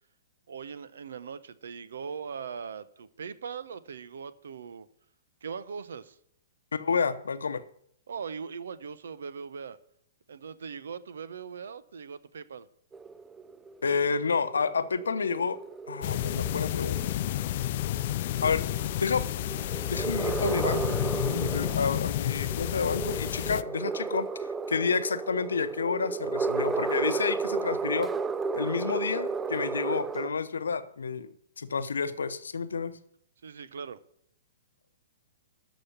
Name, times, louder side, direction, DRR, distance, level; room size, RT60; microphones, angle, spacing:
voice 1, 0.5-4.9 5.4-6.2 8.1-9.8 10.3-12.7 33.4-34.0, right 6 dB, 70° right, 0.8 m, -40 dB
voice 2, 6.7-7.6 13.8-15.6 15.9-17.1 18.4-18.6 19.0-19.3 19.9-24.3 24.7-28.1 28.5-31.3 31.6-32.9, left 5 dB, 75° left, 0.9 m, -30 dB
sound 1, 12.9-30.3, right 4 dB, 15° right, 0.5 m, -34 dB
sound 2, 16.0-23.6, left 13 dB, 50° left, 0.4 m, -31 dB
13.0 x 6.2 x 7.2 m
figure-of-eight pair, 120°, 0 cm